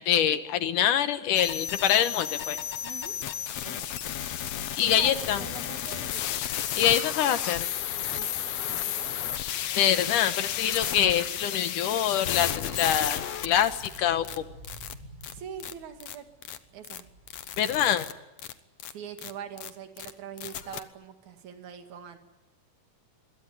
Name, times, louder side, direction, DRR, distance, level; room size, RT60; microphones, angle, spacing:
voice 1, 0.0-2.6 4.7-5.4 6.8-7.7 9.8-14.5 17.6-18.1, left 10 dB, 80° left, 11 dB, 2.7 m, -25 dB
sound 1, 1.4-14.0 14.2-14.4 14.6-14.9 15.2-15.3 15.6-15.7 16.0-16.2 16.4-16.6 16.8-17.0 17.3-18.1 18.4-18.5 18.8-18.9 19.2-19.3 19.6-19.7 20.0-20.1 20.4-20.8, left 10 dB, 60° left, 2.0 m, -33 dB
voice 2, 2.8-3.2 3.6-4.1 4.8-6.4 8.2-9.4 15.3-16.3 16.7-17.1 18.9-22.2, right 8 dB, 65° right, 6 dB, 3.4 m, -43 dB
sound 2, 9.5-18.0, right 1 dB, 15° right, 3.5 m, -52 dB
Water, 10.5-15.9, right 2 dB, 35° right, 6.2 m, -56 dB
25.0 x 22.0 x 8.9 m, 1.0 s
omnidirectional pair, 3.7 m